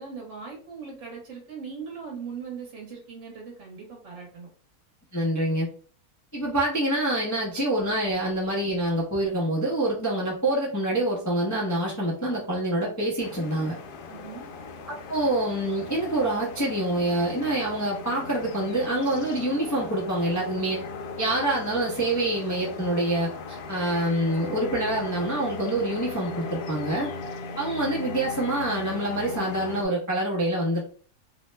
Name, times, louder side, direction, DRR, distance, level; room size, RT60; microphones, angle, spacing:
voice 1, 0.0-4.5 14.1-14.4, right 5 dB, 55° right, -2 dB, 1.2 m, -39 dB
voice 2, 5.1-5.7 6.3-13.8 15.1-20.8 21.2-27.1 27.6-30.8, right 1 dB, 30° left, -4 dB, 0.3 m, -26 dB
sound 1, 13.2-29.9, left 3 dB, 80° left, 1.1 m, -38 dB
3.0 x 2.1 x 3.2 m, 0.42 s
omnidirectional pair, 1.7 m